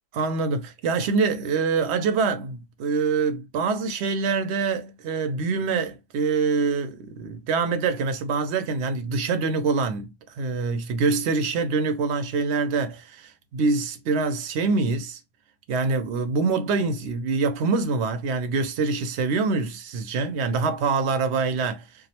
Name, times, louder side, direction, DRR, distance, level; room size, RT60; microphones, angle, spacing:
voice 1, 0.1-15.2 15.7-21.8, right 4 dB, 85° right, 0.8 m, -25 dB
2.4 x 2.0 x 2.8 m
omnidirectional pair, 1.1 m